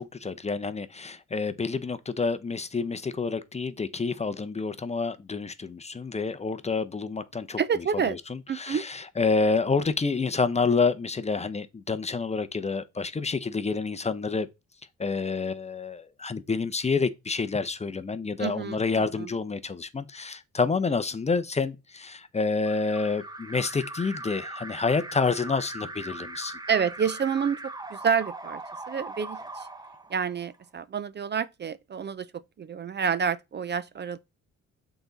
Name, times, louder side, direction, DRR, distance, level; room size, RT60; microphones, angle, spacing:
voice 1, 0.0-14.5 15.0-26.6, left 4 dB, 20° left, 0.7 m, -28 dB
voice 2, 7.6-8.2 8.5-8.9 18.4-18.8 19.2-19.3 26.7-27.6 27.9-28.6 28.9-29.7 30.1-32.3 32.6-34.2, right 6 dB, 35° right, 0.5 m, -28 dB
Alarm, 22.6-30.5, right 2 dB, 15° right, 0.9 m, -40 dB
6.9 x 4.0 x 4.0 m
cardioid pair, 90°, 30 cm